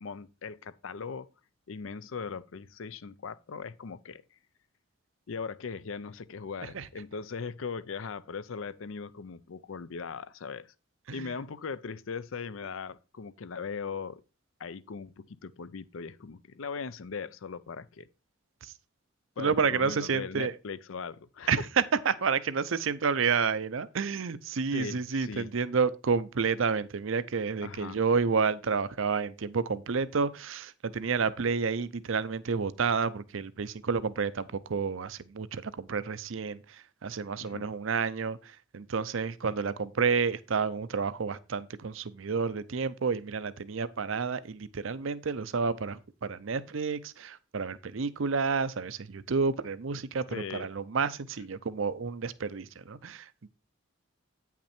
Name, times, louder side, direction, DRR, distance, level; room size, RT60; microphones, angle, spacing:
voice 1, 0.0-1.3 1.7-4.2 5.3-10.7 11.1-14.2 14.6-18.1 19.4-21.6 24.7-25.5 27.6-28.0 37.4-37.7 50.3-50.7, left 5 dB, 75° left, 0.5 m, -39 dB
voice 2, 19.4-20.5 21.5-53.5, right 5 dB, 70° right, 0.6 m, -30 dB
9.0 x 5.9 x 4.3 m
head